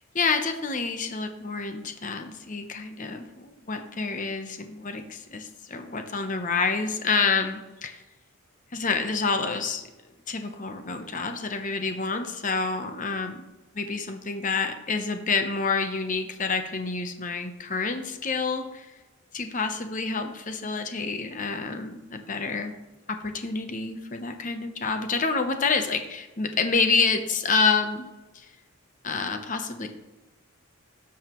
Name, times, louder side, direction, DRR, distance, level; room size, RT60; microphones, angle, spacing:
voice 1, 0.1-8.0 8.7-9.9 10.3-13.4 13.8-18.9 19.3-22.7 23.2-28.1 28.3-28.5 29.0-29.9, left 4 dB, 35° left, 6 dB, 0.9 m, -28 dB
12.5 x 7.2 x 3.1 m, 1.1 s
head